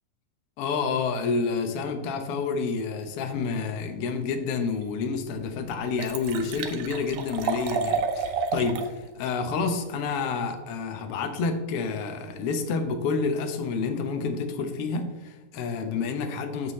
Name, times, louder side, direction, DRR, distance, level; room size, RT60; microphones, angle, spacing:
voice 1, 0.6-16.7, left 4 dB, 85° left, 5 dB, 1.3 m, -29 dB
Liquid, 4.8-4.9 5.4-5.5 5.7-8.9 9.3-9.4, right 5 dB, 90° right, 1.5 m, -30 dB
14.0 x 5.3 x 3.2 m, 1.1 s
omnidirectional pair, 4.0 m